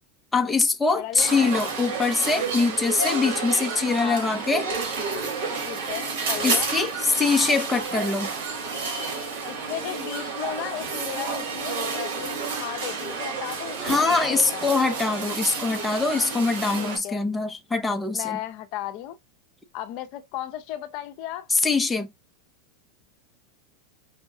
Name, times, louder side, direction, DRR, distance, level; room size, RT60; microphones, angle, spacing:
voice 1, 0.3-4.7 6.4-8.3 13.8-18.4 21.5-22.1, left 4 dB, 10° left, 0.6 m, -23 dB
voice 2, 0.9-1.4 2.3-2.7 4.0-4.4 5.7-6.7 9.5-14.7 16.8-17.2 18.1-19.2 19.7-21.5, left 12 dB, 55° left, 0.6 m, -35 dB
sound 1, 1.2-17.0, right 4 dB, 70° right, 2.5 m, -30 dB
5.5 x 2.3 x 2.7 m
supercardioid pair, 125°, 0 cm